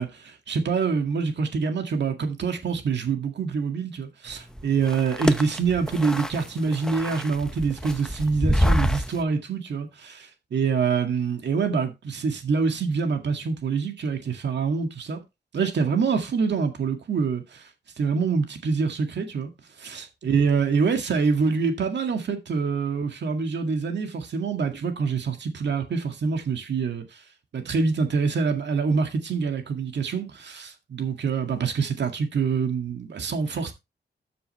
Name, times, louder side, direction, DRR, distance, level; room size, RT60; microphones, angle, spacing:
voice 1, 0.0-15.2 15.5-17.7 18.0-19.5 19.8-27.2 27.5-33.7, right 5 dB, 70° right, 2.0 m, -26 dB
sound 1, 4.3-9.2, equal, 5° left, 0.8 m, -27 dB
13.5 x 6.8 x 3.2 m
wide cardioid pair, 155°, 19 cm